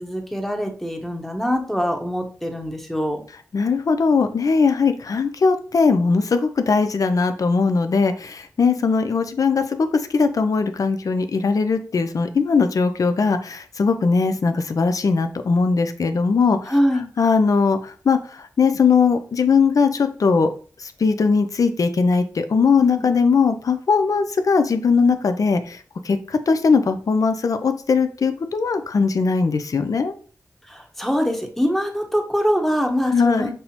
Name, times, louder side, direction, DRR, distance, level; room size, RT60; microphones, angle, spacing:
voice 1, 0.0-3.2 16.7-17.1 22.8-23.0 30.7-33.5, equal, 5° left, 3 dB, 0.8 m, -23 dB
voice 2, 3.5-16.7 17.2-20.5 20.8-25.8 26.0-30.1 33.1-33.5, left 5 dB, 60° left, 9 dB, 0.4 m, -19 dB
5.4 x 2.0 x 2.9 m, 0.40 s
cardioid pair, 50°, 7 cm